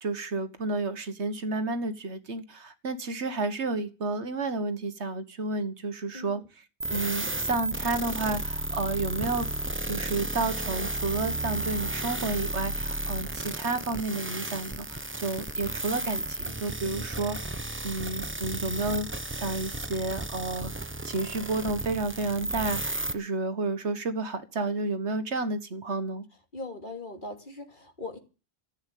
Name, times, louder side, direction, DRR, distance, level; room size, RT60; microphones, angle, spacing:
voice 1, 0.0-6.4 6.9-9.5 9.8-17.4 17.8-26.2, right 3 dB, 80° right, 1.8 m, -31 dB
voice 2, 6.1-6.5 16.8-17.4 26.5-28.2, left 2 dB, 45° left, 3.1 m, -40 dB
sound 1, 6.8-23.1, right 2 dB, 10° right, 0.8 m, -33 dB
14.5 x 8.9 x 9.2 m
omnidirectional pair, 1.1 m